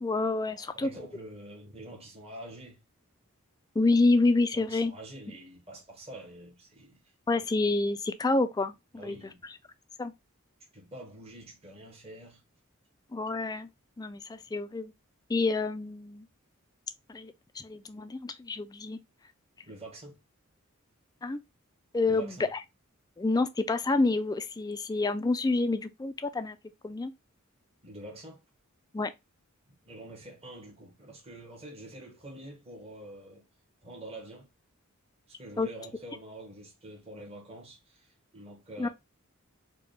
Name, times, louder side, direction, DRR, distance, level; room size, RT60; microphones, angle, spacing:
voice 1, 0.0-0.9 3.8-4.9 7.3-9.2 10.0-10.1 13.1-13.7 14.0-14.9 15.3-16.3 17.1-19.0 21.2-21.4 21.9-22.6 23.2-26.6 26.8-27.1 28.9-29.1 35.6-35.7 38.8-38.9, left 3 dB, 15° left, 0.3 m, -28 dB
voice 2, 0.5-2.8 4.5-7.1 8.9-9.4 10.7-12.4 19.6-20.2 22.0-22.5 27.8-28.4 29.8-33.4 33.8-34.5 35.3-38.9, right 1 dB, 30° right, 1.2 m, -46 dB
4.8 x 2.2 x 3.1 m
head